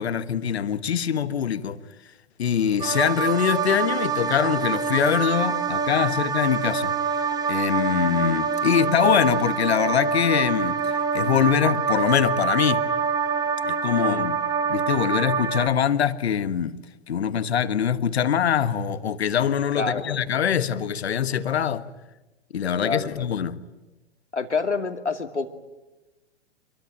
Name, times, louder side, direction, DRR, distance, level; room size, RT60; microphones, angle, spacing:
voice 1, 0.0-1.8 2.4-6.9 7.2-12.8 13.6-14.4 14.7-16.8 17.1-21.8 22.5-23.6, left 8 dB, 65° left, 1.5 m, -23 dB
sound 1, 2.8-15.7, right 6 dB, 10° right, 1.9 m, -25 dB
voice 2, 13.9-14.3 19.8-20.2 22.8-23.3 24.3-25.5, left 4 dB, 85° left, 2.5 m, -28 dB
27.0 x 23.0 x 9.2 m
figure-of-eight pair, 110°, 34 cm